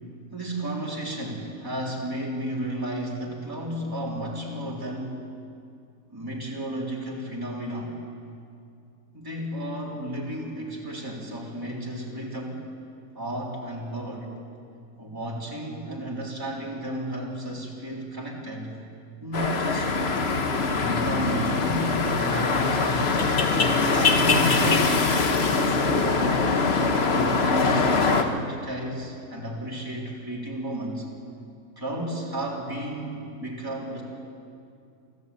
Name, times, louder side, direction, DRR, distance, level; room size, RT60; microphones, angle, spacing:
voice 1, 0.3-5.3 6.1-8.0 9.1-12.6 13.2-14.3 15.0-18.7 19.2-23.1 23.6-26.5 27.0-31.1 31.8-34.0, right 1 dB, 15° right, -5 dB, 3.6 m, -33 dB
sound 1, 19.3-28.2, left 4 dB, 45° left, 1.3 m, -23 dB
24.5 x 15.0 x 8.5 m, 2.5 s
omnidirectional pair, 1.6 m